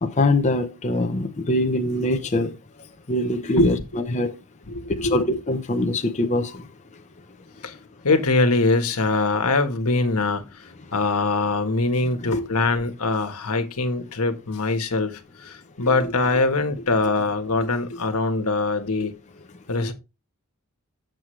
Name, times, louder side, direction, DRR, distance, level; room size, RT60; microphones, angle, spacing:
voice 1, 0.0-2.6 3.1-4.4 5.0-6.7 12.2-12.3, left 1 dB, 30° left, 0.7 m, -23 dB
voice 2, 4.7-5.4 7.6-7.7 8.0-10.4 10.9-19.1 19.7-19.9, left 3 dB, 85° left, 1.3 m, -23 dB
7.7 x 7.5 x 3.2 m
head